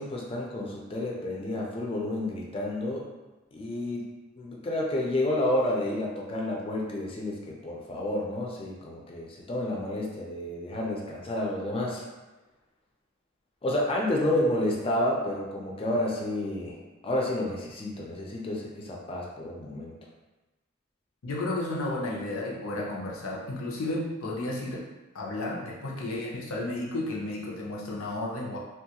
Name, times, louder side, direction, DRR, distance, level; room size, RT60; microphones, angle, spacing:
voice 1, 0.0-3.1 3.5-4.1 4.4-12.0 13.6-16.8 17.0-20.0, left 1 dB, 25° left, -2 dB, 0.4 m, -30 dB
voice 2, 21.2-24.9 25.1-28.6, left 2 dB, 85° left, -3 dB, 0.6 m, -32 dB
3.0 x 2.3 x 2.8 m, 1.1 s
head